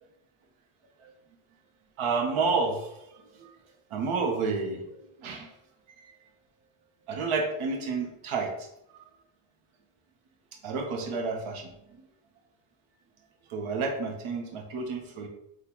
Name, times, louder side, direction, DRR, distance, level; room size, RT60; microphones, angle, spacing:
voice 1, 2.0-3.5 3.9-4.9 5.2-5.5 6.0-6.1 7.1-9.0 10.6-12.0 13.5-15.3, right 4 dB, 75° right, 3 dB, 0.8 m, -30 dB
3.8 x 2.3 x 2.9 m, 0.83 s
cardioid pair, 110°, 50 cm